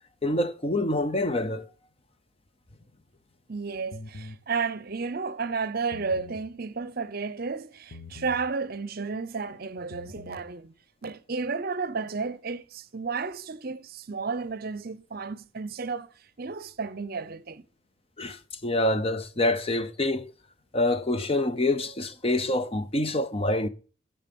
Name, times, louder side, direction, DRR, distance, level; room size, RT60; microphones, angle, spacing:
voice 1, 0.2-1.7 18.2-20.3 20.7-23.7, left 1 dB, 30° left, 0.6 m, -26 dB
voice 2, 3.5-10.7 11.0-16.1 16.4-17.7, right 4 dB, 45° right, 0.7 m, -32 dB
sound 1, 3.9-4.4 5.8-6.4 7.9-8.5 9.8-10.4, left 2 dB, 80° left, 1.2 m, -43 dB
14.5 x 6.8 x 5.3 m
head